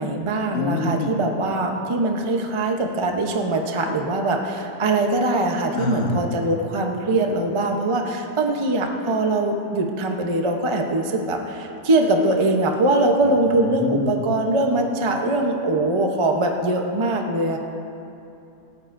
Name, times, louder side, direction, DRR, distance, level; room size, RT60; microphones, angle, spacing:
voice 1, 0.0-17.6, right 2 dB, 25° right, 2 dB, 0.6 m, -22 dB
voice 2, 0.5-1.1 5.7-6.2 13.5-14.1, left 3 dB, 50° left, 2 dB, 1.4 m, -26 dB
28.5 x 9.5 x 2.6 m, 2.8 s
omnidirectional pair, 1.7 m